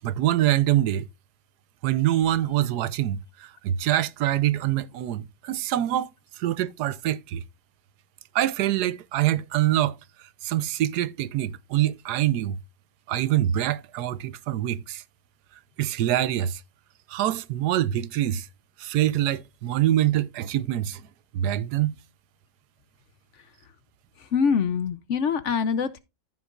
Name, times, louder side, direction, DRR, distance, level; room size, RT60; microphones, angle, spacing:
voice 1, 0.0-1.0 1.8-6.1 6.4-7.4 8.3-12.6 13.1-15.0 15.8-16.6 17.1-18.5 18.8-21.0 21.3-22.0, right 13 dB, 70° right, 1.1 m, -25 dB
voice 2, 24.2-26.0, left 6 dB, 65° left, 0.7 m, -25 dB
14.5 x 6.0 x 2.4 m
omnidirectional pair, 1.9 m